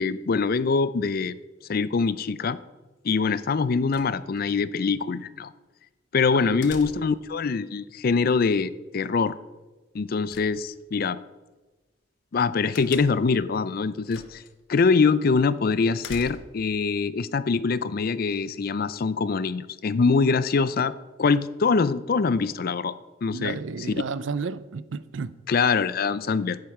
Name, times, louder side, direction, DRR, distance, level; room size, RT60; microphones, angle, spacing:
voice 1, 0.0-1.3 1.7-2.6 3.0-5.5 6.1-9.4 9.9-11.2 12.3-14.4 14.7-20.9 21.2-22.9 23.2-23.6 25.5-26.6, left 4 dB, 50° left, 0.4 m, -24 dB
sound 1, 3.9-4.5 6.6-7.3 10.3-11.1 12.7-13.4 14.1-14.5 14.9-15.0 16.0-16.7, left 4 dB, 75° left, 1.1 m, -43 dB
voice 2, 6.3-6.7 23.3-25.4, right 5 dB, 80° right, 0.5 m, -32 dB
10.5 x 9.5 x 4.8 m
head